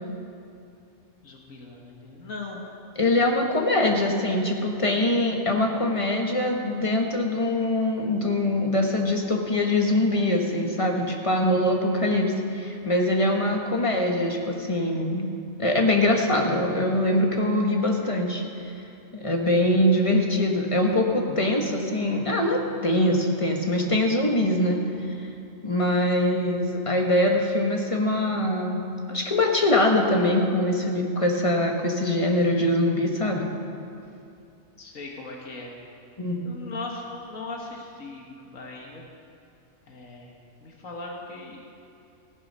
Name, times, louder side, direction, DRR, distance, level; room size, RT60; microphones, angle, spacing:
voice 1, 1.2-2.6 34.8-35.8 36.4-39.1 39.9-40.3 40.6-41.6, left 3 dB, 80° left, -1 dB, 1.8 m, -39 dB
voice 2, 3.0-15.3 15.6-18.4 19.1-25.1 25.6-28.8 29.1-33.5 36.2-36.5, left 1 dB, 25° left, 1 dB, 1.2 m, -23 dB
16.0 x 9.3 x 5.4 m, 2.6 s
omnidirectional pair, 1.4 m